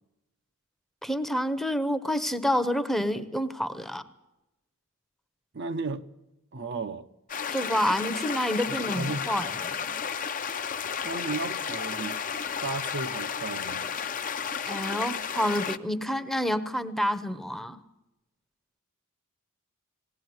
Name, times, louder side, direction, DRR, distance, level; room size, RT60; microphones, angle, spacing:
voice 1, 1.0-4.0 7.5-9.9 14.7-17.8, equal, ahead, 0.8 m, -28 dB
voice 2, 5.5-6.0 6.5-7.1 8.7-9.5 11.0-12.2 12.6-13.9, right 3 dB, 55° right, 0.7 m, -34 dB
sound 1, 7.3-15.8, left 7 dB, 40° left, 0.7 m, -32 dB
20.0 x 17.5 x 9.5 m
head